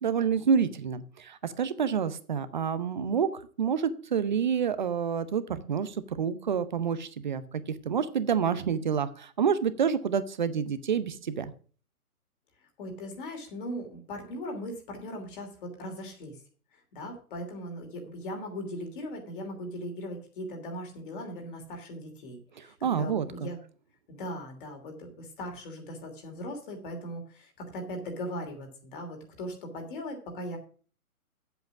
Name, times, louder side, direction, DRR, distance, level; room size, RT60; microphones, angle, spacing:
voice 1, 0.0-3.3 3.6-11.5 22.6-23.5, right 7 dB, 30° right, 13 dB, 0.7 m, -28 dB
voice 2, 12.8-16.4 16.7-23.6 24.1-30.6, equal, 35° left, 3 dB, 3.1 m, -39 dB
8.0 x 7.9 x 7.1 m, 0.42 s
hypercardioid pair, 160°, 45 cm